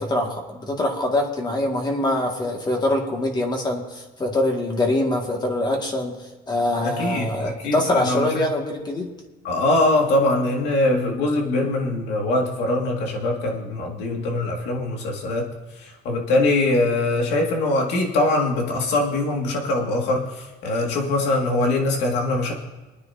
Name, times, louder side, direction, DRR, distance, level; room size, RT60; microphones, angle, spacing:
voice 1, 0.0-6.2 6.5-9.1, left 1 dB, 25° left, 1 dB, 2.2 m, -24 dB
voice 2, 6.8-8.4 9.4-22.5, left 2 dB, 90° left, 1 dB, 2.3 m, -22 dB
25.0 x 9.8 x 2.9 m, 1.2 s
cardioid pair, 110°, 17 cm